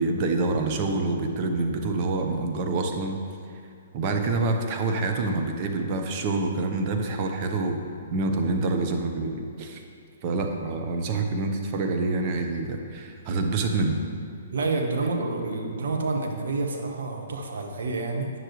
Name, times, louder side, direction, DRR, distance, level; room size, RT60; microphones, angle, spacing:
voice 1, 0.0-3.2 3.9-7.8 8.1-9.8 10.2-14.0, right 3 dB, 40° right, 3 dB, 0.9 m, -26 dB
voice 2, 14.5-18.3, right 3 dB, 65° right, 2 dB, 1.1 m, -28 dB
9.4 x 6.7 x 3.2 m, 2.3 s
hypercardioid pair, 125°, 0 cm